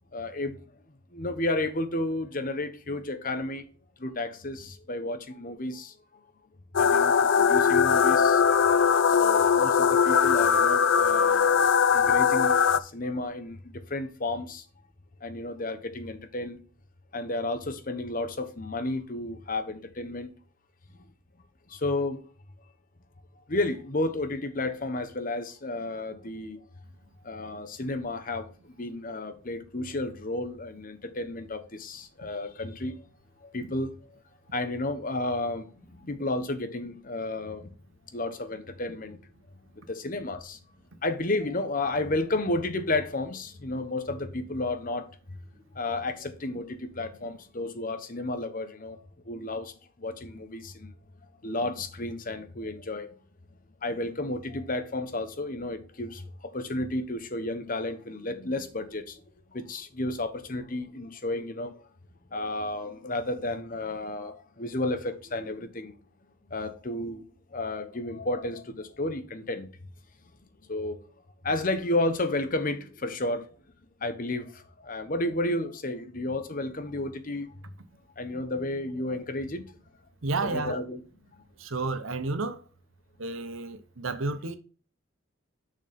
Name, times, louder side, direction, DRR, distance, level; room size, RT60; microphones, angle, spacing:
voice 1, 0.1-0.8 1.1-3.6 4.0-6.0 6.8-8.8 9.1-14.7 15.2-16.6 17.1-20.3 21.7-22.2 23.5-26.6 27.2-33.0 33.4-34.2 34.5-37.7 38.1-39.2 39.7-40.6 41.0-45.1 45.7-50.9 51.4-53.1 53.8-59.2 59.5-61.9 62.3-66.0 66.5-67.2 67.5-69.7 70.7-71.0 71.4-73.5 74.0-77.5 78.2-79.6 80.4-81.0, left 2 dB, 40° left, 1.0 m, -32 dB
sound 1, 6.8-12.8, left 6 dB, 60° left, 0.5 m, -21 dB
voice 2, 80.2-80.8 81.6-82.6 83.2-84.6, right 3 dB, 75° right, 0.9 m, -31 dB
6.5 x 6.3 x 3.5 m
head